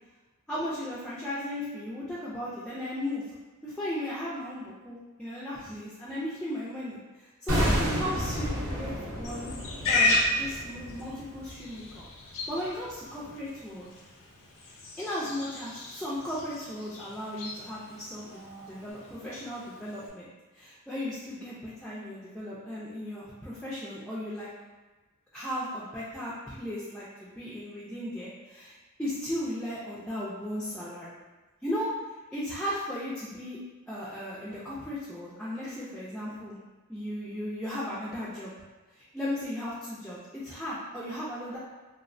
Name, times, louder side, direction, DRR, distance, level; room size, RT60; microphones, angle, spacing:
voice 1, 0.5-3.2 3.6-9.5 9.9-12.1 12.5-13.9 15.0-18.3 18.6-20.3 20.5-24.5 25.3-31.2 31.6-31.9 32.3-33.6 33.9-36.6 36.9-38.5 38.9-41.6, left 1 dB, 5° left, -9 dB, 0.3 m, -36 dB
sound 1, 7.5-12.5 12.7-12.9, equal, 60° right, 0.7 m, -31 dB
Livestock farm animals working animals, 9.2-20.1, left 2 dB, 65° left, 0.5 m, -34 dB
2.7 x 2.0 x 2.5 m, 1.2 s
head